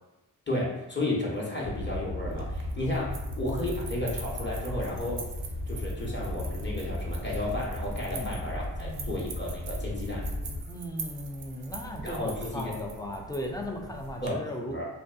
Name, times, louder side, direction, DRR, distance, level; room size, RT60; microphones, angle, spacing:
voice 1, 0.5-5.3 5.7-10.3 12.0-12.7 14.2-14.9, left 1 dB, 25° left, -5 dB, 0.8 m, -33 dB
sound 1, 1.6-10.6, left 1 dB, 60° left, 1.0 m, -36 dB
sound 2, 2.3-14.3, right 4 dB, 70° right, 0.6 m, -43 dB
voice 2, 8.8-9.2 10.7-14.8, left 1 dB, 10° left, 2 dB, 0.4 m, -37 dB
2.5 x 2.2 x 2.4 m, 1.0 s
cardioid pair, 45°, 44 cm